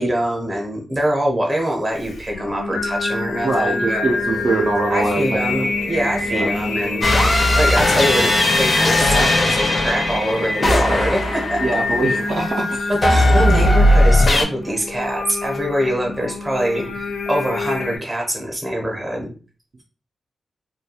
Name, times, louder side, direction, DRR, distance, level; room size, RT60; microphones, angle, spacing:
voice 1, 0.0-4.1 4.9-11.6 12.9-19.3, equal, 15° right, 0 dB, 0.7 m, -24 dB
Singing, 2.0-18.0, left 3 dB, 85° left, 0.4 m, -26 dB
voice 2, 3.4-5.7 6.3-6.5 11.6-12.9, right 2 dB, 45° right, -1 dB, 0.4 m, -22 dB
sound 1, 4.1-11.0, right 1 dB, 80° right, 0.7 m, -37 dB
sound 2, 7.0-12.1 13.0-14.4, left 1 dB, 35° left, 0.5 m, -17 dB
2.3 x 2.2 x 2.8 m, 0.37 s
wide cardioid pair, 165°, 0 cm